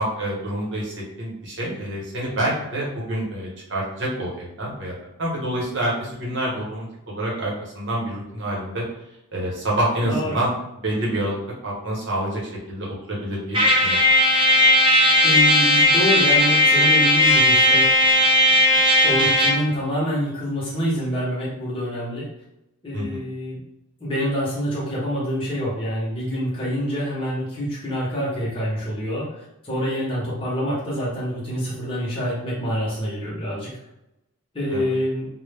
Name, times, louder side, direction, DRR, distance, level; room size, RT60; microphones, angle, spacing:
voice 1, 0.0-4.9 5.2-8.8 9.3-10.5 10.8-11.4 11.6-12.4 12.7-14.0 22.9-23.2 34.7-34.9, right 1 dB, 55° right, -4 dB, 0.8 m, -27 dB
voice 2, 10.1-10.4 15.2-17.9 19.0-22.3 22.8-23.6 24.0-29.4 29.6-33.7 34.5-35.3, equal, 25° left, -7 dB, 0.6 m, -26 dB
Trumpet, 13.5-19.7, left 1 dB, 25° right, 0.4 m, -16 dB
2.1 x 2.0 x 3.2 m, 0.89 s
head